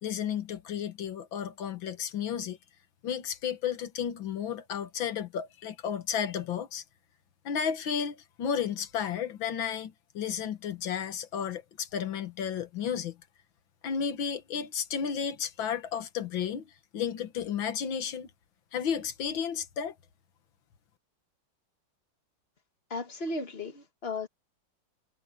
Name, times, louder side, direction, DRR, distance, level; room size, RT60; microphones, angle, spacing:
voice 1, 0.0-2.6 3.0-6.8 7.5-13.2 13.8-16.7 16.9-18.3 18.7-20.0, left 8 dB, 85° left, 2.1 m, -33 dB
voice 2, 22.9-24.3, left 2 dB, 35° left, 1.8 m, -35 dB
omnidirectional pair, 2.1 m